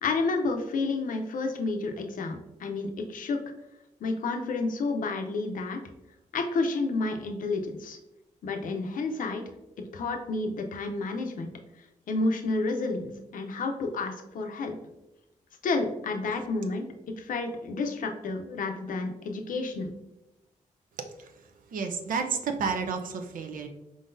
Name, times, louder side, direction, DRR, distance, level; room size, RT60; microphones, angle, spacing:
voice 1, 0.0-3.4 4.0-5.8 6.3-8.0 8.4-9.4 9.9-11.5 12.1-14.8 15.6-16.9 17.2-19.9, left 3 dB, 75° left, 4 dB, 0.6 m, -30 dB
voice 2, 21.7-23.7, right 5 dB, 75° right, 6 dB, 0.6 m, -30 dB
4.8 x 3.8 x 2.6 m, 0.93 s
cardioid pair, 85°, 14 cm